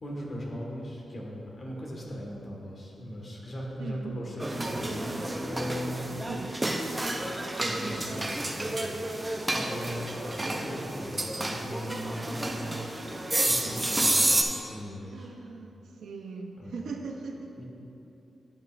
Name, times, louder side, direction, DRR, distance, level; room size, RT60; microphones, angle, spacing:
voice 1, 0.0-6.3 7.6-9.0 9.5-13.0 13.4-15.3 16.6-16.9 17.6-17.7, equal, 40° left, -3 dB, 1.5 m, -38 dB
voice 2, 3.8-4.2 6.3-6.6 15.1-17.6, right 4 dB, 90° right, 3 dB, 0.6 m, -39 dB
sound 1, 4.4-14.4, right 1 dB, 15° right, 0.5 m, -30 dB
11.0 x 8.3 x 2.5 m, 2.9 s
wide cardioid pair, 140°, 0 cm